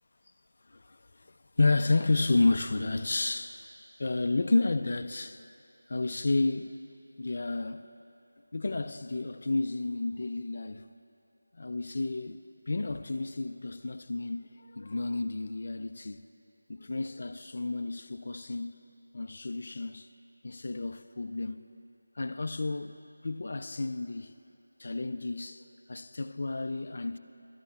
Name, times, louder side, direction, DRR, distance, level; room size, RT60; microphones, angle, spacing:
voice 1, 0.7-3.6 4.0-5.4 5.9-6.8 7.2-7.9 8.5-10.9 11.5-16.3 16.7-18.8 19.1-20.1 20.4-21.7 22.2-24.3 24.8-27.2, left 3 dB, 50° left, 0.4 m, -31 dB
26.5 x 13.0 x 2.4 m
figure-of-eight pair, 170°, 0 cm